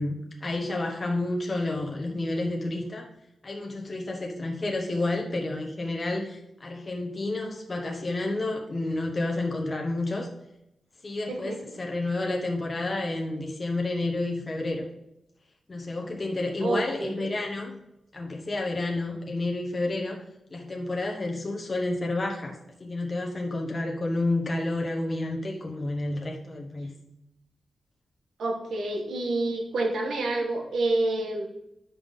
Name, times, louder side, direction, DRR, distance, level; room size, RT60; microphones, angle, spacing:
voice 1, 0.0-3.1 3.4-10.3 11.0-14.9 15.7-17.8 18.1-20.2 20.5-26.9, left 2 dB, 30° left, 0 dB, 1.1 m, -30 dB
voice 2, 11.3-11.8 16.6-17.4 28.4-31.5, right 2 dB, 85° right, 2 dB, 1.5 m, -28 dB
9.8 x 5.5 x 3.7 m, 0.84 s
wide cardioid pair, 130°, 0 cm